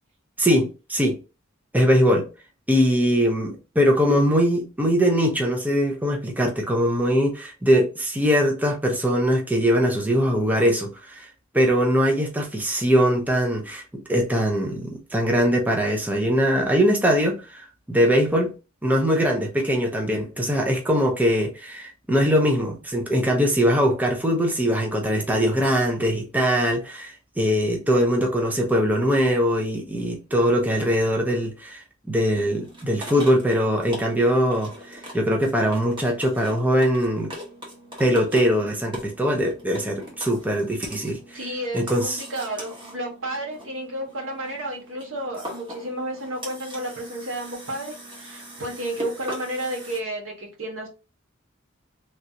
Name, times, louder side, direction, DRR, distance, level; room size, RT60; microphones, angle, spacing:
voice 1, 0.4-1.2 1.7-2.3 2.7-11.3 11.5-18.5 18.8-31.8 32.1-37.3 38.0-41.4 41.7-42.2, equal, 10° right, 0.5 m, -22 dB
sound 1, 32.3-50.0, equal, 25° right, 1.2 m, -41 dB
voice 2, 41.3-50.9, right 1 dB, 85° right, 1.4 m, -32 dB
3.2 x 2.6 x 2.8 m
head